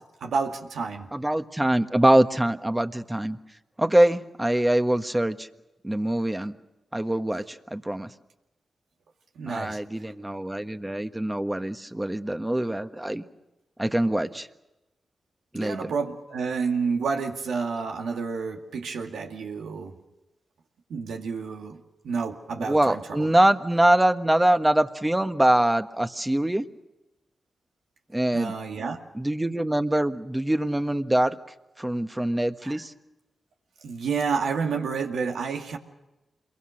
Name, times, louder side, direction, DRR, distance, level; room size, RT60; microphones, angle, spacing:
voice 1, 0.2-1.1 9.4-9.8 15.5-19.9 20.9-21.8 22.0-23.3 28.3-29.0 32.6-32.8 33.8-35.8, right 5 dB, 85° right, 2 dB, 2.2 m, -29 dB
voice 2, 1.1-3.4 3.8-5.5 5.8-6.5 6.9-8.1 9.5-13.2 13.8-14.5 15.5-15.9 22.6-26.6 28.1-28.5 29.1-31.4 31.8-32.9, right 1 dB, 15° right, 8 dB, 1.4 m, -23 dB
27.0 x 22.5 x 6.5 m, 0.99 s
cardioid pair, 45°, 0 cm